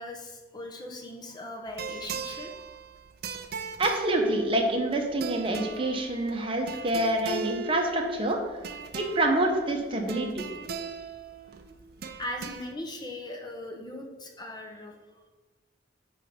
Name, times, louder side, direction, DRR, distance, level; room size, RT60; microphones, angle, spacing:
voice 1, 0.0-2.8 9.9-10.1 12.2-15.2, left 1 dB, 20° left, 2 dB, 0.8 m, -40 dB
sound 1, 1.7-12.7, right 5 dB, 50° right, 0.5 m, -39 dB
voice 2, 3.8-8.6 8.9-10.4, right 1 dB, 25° right, 2 dB, 0.9 m, -27 dB
9.1 x 3.4 x 5.1 m, 1.3 s
head